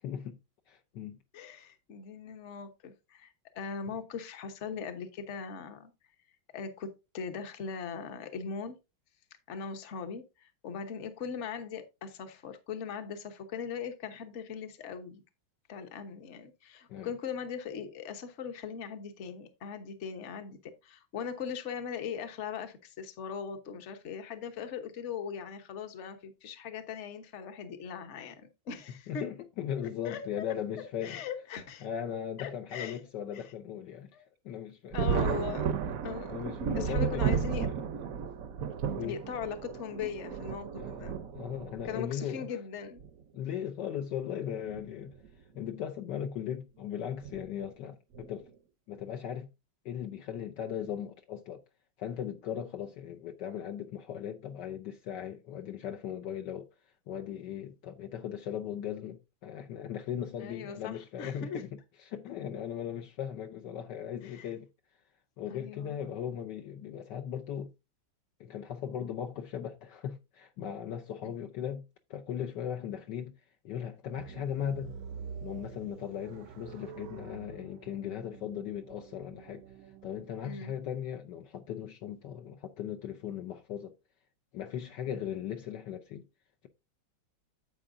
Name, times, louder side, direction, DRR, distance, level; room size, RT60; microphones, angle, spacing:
voice 1, 0.0-0.4 0.7-1.2 3.9-4.0 16.9-17.1 29.1-31.2 31.8-34.1 34.4-35.0 36.3-37.8 38.9-39.2 40.8-41.0 41.3-42.5 43.3-45.2 45.5-48.5 48.9-49.5 49.8-51.6 52.0-56.7 57.1-61.8 62.1-64.7 65.4-67.7 68.4-71.8 72.1-73.3 73.6-75.0 75.4-79.6 80.0-83.9 84.5-86.3, left 9 dB, 70° left, 1.3 m, -38 dB
voice 2, 1.3-5.9 6.5-8.8 9.5-15.2 15.7-29.3 29.8-30.2 31.0-31.9 32.4-33.0 33.3-33.4 34.1-34.3 34.9-35.8 36.0-36.4 36.7-37.7 39.0-41.2 41.8-43.0 60.4-61.6 64.2-64.5 65.5-66.0 71.2-71.3 80.4-80.7 85.1-85.2, left 6 dB, 45° left, 1.2 m, -40 dB
Thunder, 34.9-42.0 43.0-43.1 44.6-44.8 45.2-45.3 47.2-47.4 48.1-48.5, right 7 dB, 60° right, 0.9 m, -33 dB
sound 1, 74.1-80.4, right 6 dB, 85° right, 1.6 m, -47 dB
10.0 x 7.7 x 2.6 m
omnidirectional pair, 2.2 m